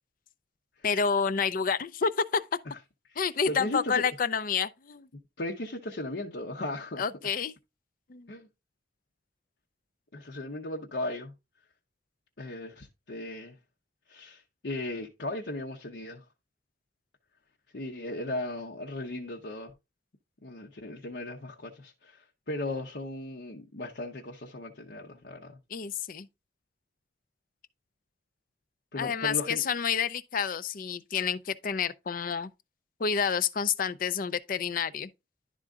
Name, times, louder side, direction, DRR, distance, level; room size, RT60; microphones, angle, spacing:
voice 1, 0.8-2.5 3.2-5.1 7.0-7.5 8.1-8.3 25.7-26.3 29.0-32.5 33.0-35.1, left 6 dB, 45° left, 0.5 m, -29 dB
voice 2, 3.5-4.0 5.4-7.1 8.3-8.5 10.1-11.3 12.4-13.6 14.1-16.2 17.7-19.7 20.4-25.6 28.9-29.6, left 1 dB, 65° left, 0.8 m, -37 dB
11.0 x 3.8 x 3.5 m
head